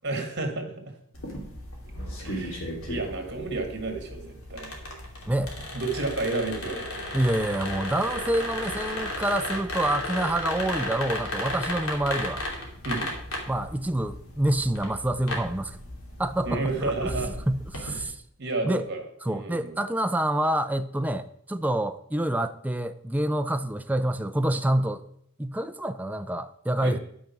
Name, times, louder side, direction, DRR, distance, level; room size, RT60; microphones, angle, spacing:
voice 1, 0.0-0.9 2.2-4.7 5.7-7.1 12.9-13.1 16.4-17.3 17.8-18.1 18.4-19.8 26.8-27.0, right 2 dB, 50° right, 2.0 m, -31 dB
sound 1, 1.1-18.0, left 1 dB, 80° left, 2.7 m, -35 dB
voice 2, 7.1-12.4 13.5-15.8 16.2-17.1 17.5-18.2 18.6-18.9 19.2-25.0 25.4-27.0, right 1 dB, 5° right, 0.3 m, -27 dB
10.0 x 6.4 x 5.9 m
head